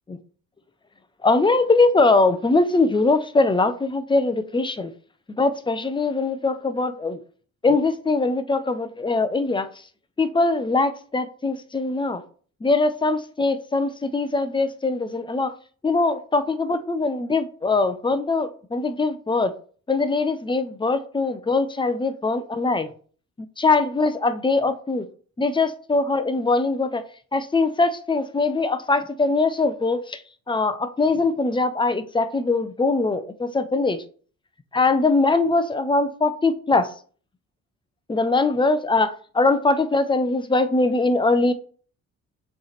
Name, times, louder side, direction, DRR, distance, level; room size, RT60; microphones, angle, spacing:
voice 1, 1.2-4.9 5.4-7.2 7.6-9.7 10.2-12.2 12.6-15.5 15.8-19.5 19.9-22.9 23.6-25.1 25.4-27.0 27.3-30.2 30.5-34.0 34.7-36.9 38.1-41.5, left 3 dB, 15° left, 0.7 m, -22 dB
6.7 x 3.4 x 4.1 m
cardioid pair, 90°, 30 cm